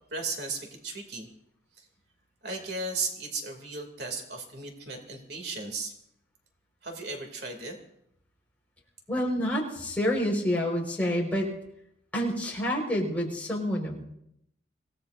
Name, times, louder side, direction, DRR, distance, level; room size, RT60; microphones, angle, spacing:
voice 1, 0.1-1.3 1.8-1.9 2.4-5.9 6.8-7.8, right 3 dB, 60° right, 3 dB, 2.7 m, -35 dB
voice 2, 9.1-11.5 12.1-14.0, equal, 10° left, -2 dB, 4.6 m, -28 dB
26.0 x 17.5 x 2.6 m, 0.75 s
head